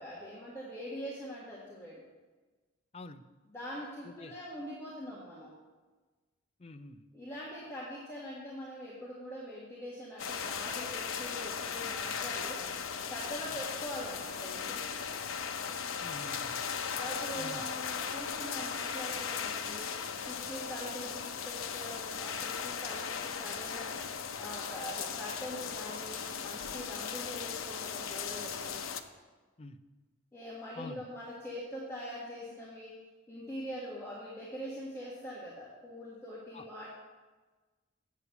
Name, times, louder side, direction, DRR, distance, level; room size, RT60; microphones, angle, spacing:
voice 1, 0.0-2.0 3.4-5.5 7.1-12.6 13.1-14.9 16.9-20.0 20.3-24.0 24.4-28.9 30.3-33.0 33.3-36.9, equal, 15° left, -7 dB, 1.6 m, -43 dB
voice 2, 6.6-7.1 16.0-16.7 17.4-17.6 29.6-29.8 30.8-31.0 36.5-36.7, left 2 dB, 30° left, 8 dB, 0.4 m, -47 dB
sound 1, 10.2-29.0, left 6 dB, 75° left, 0.7 m, -37 dB
8.4 x 6.9 x 8.3 m, 1.3 s
head